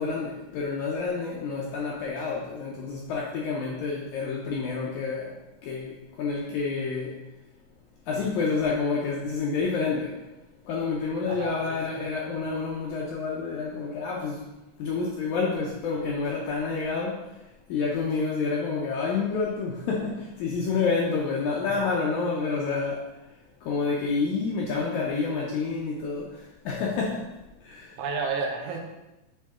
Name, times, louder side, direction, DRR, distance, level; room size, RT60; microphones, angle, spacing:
voice 1, 0.0-7.2 8.1-10.2 10.7-14.5 14.8-17.3 17.7-23.0 23.6-27.3 27.6-28.0, left 4 dB, 75° left, -3 dB, 1.8 m, -29 dB
voice 2, 11.3-12.1 28.0-28.9, right 4 dB, 80° right, 1 dB, 1.4 m, -32 dB
8.4 x 3.1 x 3.6 m, 1.0 s
omnidirectional pair, 4.0 m